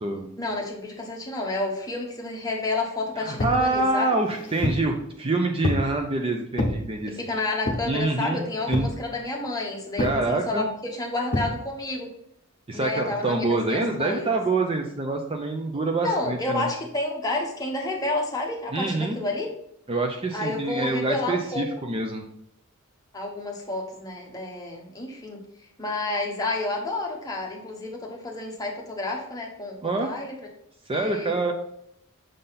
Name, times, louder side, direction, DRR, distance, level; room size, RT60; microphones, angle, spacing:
voice 1, 0.4-4.1 7.1-12.1 12.7-14.3 16.0-19.5 20.3-21.7 23.1-25.4 25.8-30.3 30.9-31.4, left 2 dB, 15° left, -1 dB, 1.1 m, -30 dB
voice 2, 3.2-7.2 7.9-8.4 8.7-8.9 10.0-10.7 12.7-16.7 18.7-19.2 19.9-22.2 29.8-30.1 30.9-31.5, right 2 dB, 25° right, 3 dB, 0.5 m, -26 dB
sound 1, 3.4-3.7 4.2-4.9 5.6-5.9 6.6-6.8 7.7-8.0 8.7-9.0 10.0-10.2 11.3-11.5, left 1 dB, 40° left, 0.9 m, -27 dB
6.5 x 3.9 x 4.1 m, 0.75 s
head